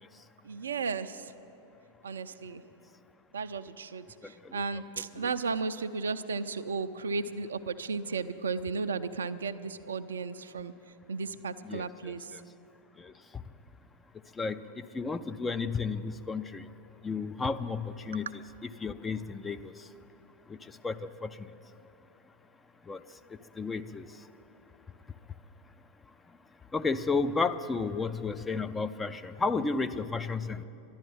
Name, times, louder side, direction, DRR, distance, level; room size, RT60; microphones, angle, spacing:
voice 1, 0.4-1.3 2.0-2.6 3.3-10.7 11.1-12.3, right 4 dB, 70° right, 11 dB, 0.5 m, -34 dB
voice 2, 4.2-4.6 5.2-5.3 11.6-12.4 13.0-13.4 14.4-16.7 17.0-19.7 20.5-21.5 22.9-23.0 23.6-24.0 26.7-30.6, left 4 dB, 15° left, 10 dB, 0.5 m, -33 dB
12.0 x 11.5 x 9.0 m, 3.0 s
figure-of-eight pair, 90°, 0 cm